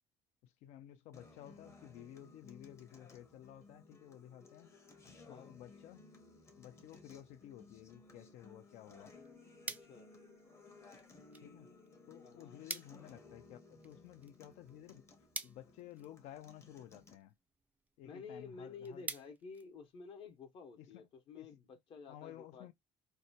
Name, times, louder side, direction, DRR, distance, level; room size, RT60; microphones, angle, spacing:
voice 1, 0.4-4.8 5.3-6.1 6.6-9.1 11.4-11.7 12.1-15.1 15.4-17.3 18.0-19.1 20.8-21.1 21.3-21.6 22.1-22.7, left 12 dB, 80° left, 0.5 m, -54 dB
Acoustic guitar, 1.1-17.1, left 3 dB, 25° left, 0.7 m, -59 dB
voice 2, 5.2-5.5 9.7-10.1 12.2-12.6 18.0-22.7, left 5 dB, 50° left, 0.8 m, -52 dB
sound 1, 9.1-20.4, right 3 dB, 15° right, 0.3 m, -51 dB
2.7 x 2.1 x 2.7 m
cardioid pair, 130°, 11 cm